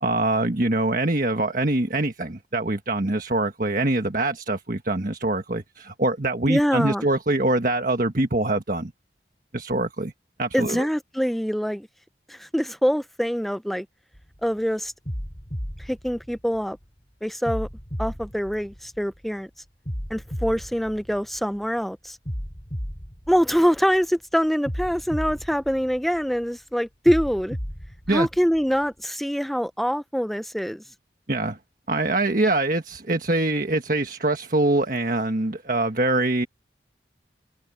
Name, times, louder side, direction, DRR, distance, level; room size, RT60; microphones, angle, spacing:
voice 1, 0.0-8.9 9.5-10.1 10.4-10.8 28.1-28.3 31.3-31.6 31.9-36.5, right 2 dB, 45° right, 1.5 m, -24 dB
voice 2, 6.5-7.1 10.5-11.9 12.3-13.9 14.4-14.9 15.8-16.8 17.2-17.7 18.0-19.5 20.1-22.2 23.3-27.6 28.1-30.8, equal, ahead, 0.8 m, -24 dB
sound 1, 14.1-14.4 15.1-16.8 17.5-19.2 19.9-21.6 22.3-24.0 24.7-26.4 27.1-28.8, equal, 30° left, 6.8 m, -34 dB
head